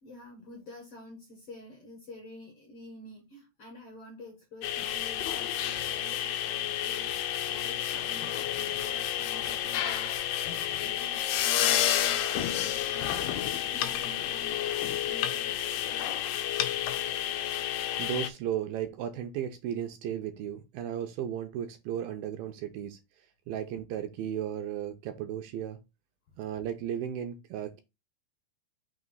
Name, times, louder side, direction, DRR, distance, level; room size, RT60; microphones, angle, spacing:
voice 1, 0.0-10.1 10.8-15.6 15.9-16.4, left 1 dB, 55° left, 1.7 m, -49 dB
sound 1, 4.6-18.3, left 11 dB, 80° left, 2.0 m, -30 dB
voice 2, 18.0-23.0 23.5-25.8 26.4-27.8, right 9 dB, 80° right, 2.3 m, -35 dB
6.1 x 3.0 x 5.4 m
omnidirectional pair, 4.5 m